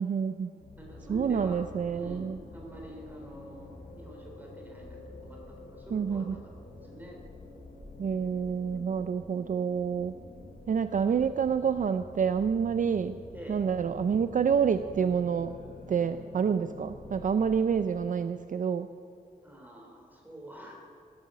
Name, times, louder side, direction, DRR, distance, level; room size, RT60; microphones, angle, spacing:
voice 1, 0.0-0.6 1.1-2.4 5.9-6.4 8.0-10.1 10.7-13.2 13.5-15.6 15.9-18.9, right 7 dB, 55° right, 10 dB, 0.4 m, -28 dB
voice 2, 0.5-1.6 1.9-6.4 6.8-7.2 8.7-8.9 13.3-13.6 19.4-20.7, equal, 10° right, -1 dB, 3.2 m, -46 dB
sound 1, 0.6-18.0, left 2 dB, 70° left, 3.5 m, -48 dB
16.0 x 11.5 x 7.5 m, 2.3 s
wide cardioid pair, 160°, 16 cm